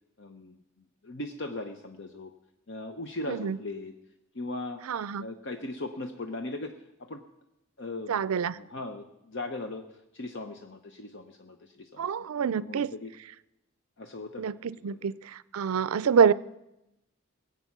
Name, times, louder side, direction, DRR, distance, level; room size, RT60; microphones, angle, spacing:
voice 1, 0.2-0.6 1.0-2.3 2.7-3.9 4.3-4.8 5.2-6.8 7.1-7.2 7.8-13.1 14.0-15.1, left 2 dB, 55° left, 6 dB, 0.8 m, -39 dB
voice 2, 4.9-5.2 8.1-8.5 12.0-12.9 14.4-16.3, right 6 dB, 85° right, 19 dB, 0.4 m, -26 dB
20.0 x 8.4 x 5.9 m, 0.90 s
head